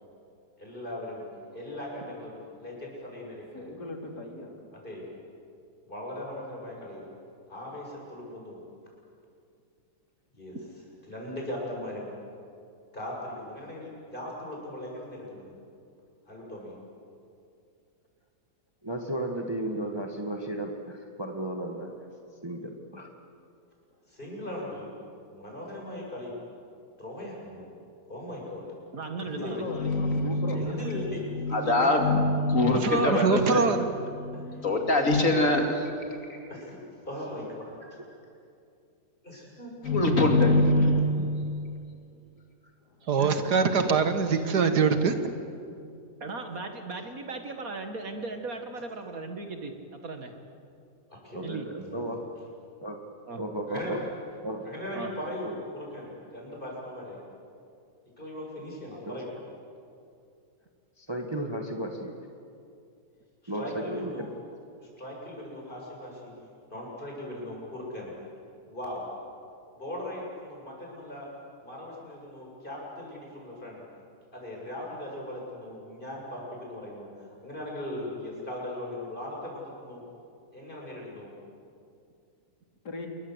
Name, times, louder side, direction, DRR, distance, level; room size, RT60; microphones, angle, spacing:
voice 1, 0.6-1.2 1.5-3.7 4.7-5.1 5.9-7.1 7.5-8.6 10.3-10.6 11.1-12.1 12.9-15.5 16.3-16.7 24.1-24.9 25.3-26.4 27.0-27.7 28.1-28.7 29.2-29.6 30.6-32.1 34.3-34.7 34.9-35.1 36.2-37.8 39.2-39.7 43.7-43.9 44.3-44.5 45.0-45.1 51.1-51.4 51.8-52.0 53.7-54.0 54.6-57.2 58.2-59.3 63.4-64.3 64.8-66.3 66.7-68.1 68.6-69.1 69.7-71.3 71.6-73.8 74.3-80.0 80.5-81.4, left 1 dB, 30° left, -3 dB, 7.4 m, -39 dB
voice 2, 3.5-4.7 29.3-29.8 30.1-30.9 31.5-31.7 40.9-41.2 43.0-43.2 46.2-46.7 82.8-83.1, left 2 dB, 80° left, 2 dB, 3.6 m, -40 dB
voice 3, 18.8-22.0 22.4-23.1 35.1-35.2 41.1-41.2 43.2-43.3 51.3-52.2 52.8-53.0 53.4-54.0 54.4-54.7 59.0-59.2 61.0-62.1 63.5-64.3, right 1 dB, 15° right, 3 dB, 1.7 m, -34 dB
voice 4, 28.9-29.6 30.5-30.9 32.1-32.2 35.2-35.3 46.2-49.7 50.0-50.3 51.4-51.7 53.3-53.4 54.9-55.1, right 3 dB, 55° right, 6 dB, 2.3 m, -37 dB
voice 5, 29.7-33.7 34.1-35.8 36.1-36.2 39.8-41.6, left 2 dB, 50° left, 3 dB, 2.8 m, -24 dB
voice 6, 32.8-33.9 43.1-45.1, right 5 dB, 75° right, 8 dB, 2.0 m, -23 dB
28.0 x 22.5 x 8.1 m, 2.5 s
omnidirectional pair, 1.7 m